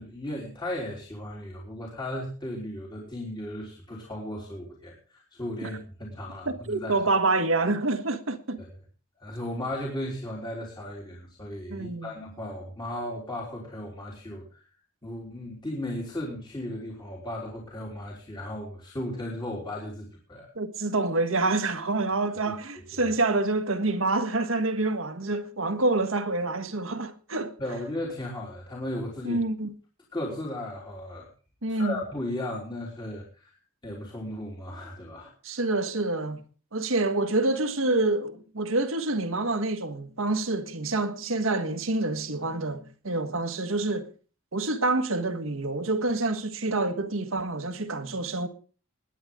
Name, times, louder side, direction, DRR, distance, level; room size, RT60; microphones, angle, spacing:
voice 1, 0.0-7.0 9.2-14.6 15.0-20.5 22.3-22.6 22.9-23.1 27.6-29.4 30.1-31.3 31.7-33.5 33.8-35.3, left 1 dB, 20° left, 3.6 m, -36 dB
voice 2, 6.4-8.6 11.7-12.1 20.5-27.5 29.2-29.7 31.6-31.9 35.4-36.4 36.7-44.1 44.5-48.5, right 2 dB, 75° right, 1.6 m, -27 dB
21.0 x 10.0 x 3.7 m
head